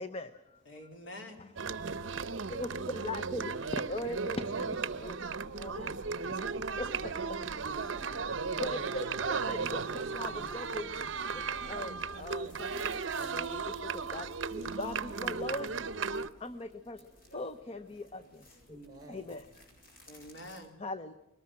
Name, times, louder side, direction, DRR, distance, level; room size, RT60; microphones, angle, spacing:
voice 1, 0.0-0.9 1.4-1.5 2.5-6.0 6.5-7.4 8.6-10.9 11.3-15.8 16.4-18.8 19.1-19.4 20.8-21.1, left 2 dB, 30° left, 10 dB, 0.7 m, -41 dB
voice 2, 0.7-1.4 10.0-10.5 20.1-20.7, left 1 dB, 60° left, 3 dB, 3.7 m, -47 dB
sound 1, 1.6-16.3, right 5 dB, 60° right, 0.7 m, -35 dB
voice 3, 7.6-9.1 18.7-19.4, right 1 dB, 20° right, 5 dB, 4.3 m, -52 dB
sound 2, 11.8-20.6, left 1 dB, 45° left, 8.0 m, -59 dB
22.0 x 19.0 x 7.5 m, 0.91 s
head